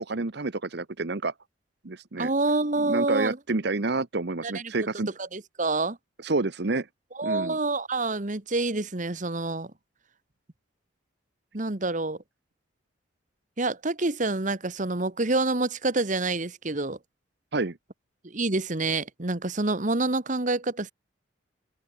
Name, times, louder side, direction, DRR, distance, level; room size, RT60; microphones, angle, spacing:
voice 1, 0.0-1.3 1.8-2.3 2.8-5.1 6.2-6.9 7.2-7.6 17.5-17.8, right 3 dB, 55° right, 1.0 m, -29 dB
voice 2, 2.2-3.4 4.4-4.7 5.2-6.0 7.1-9.7 11.5-12.2 13.6-17.0 18.2-20.9, right 2 dB, 40° right, 1.3 m, -27 dB
head